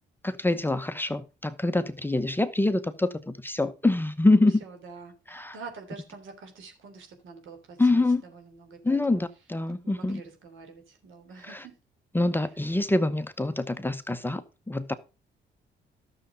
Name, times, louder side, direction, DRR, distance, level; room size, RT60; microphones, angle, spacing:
voice 1, 0.2-4.6 5.3-5.6 7.8-8.2 8.8-10.2 11.4-11.6 12.1-14.9, left 2 dB, 10° left, 0.9 m, -25 dB
voice 2, 4.6-9.2 9.8-11.8, right 4 dB, 80° right, 3.4 m, -46 dB
12.0 x 6.9 x 5.0 m
cardioid pair, 90°, 20 cm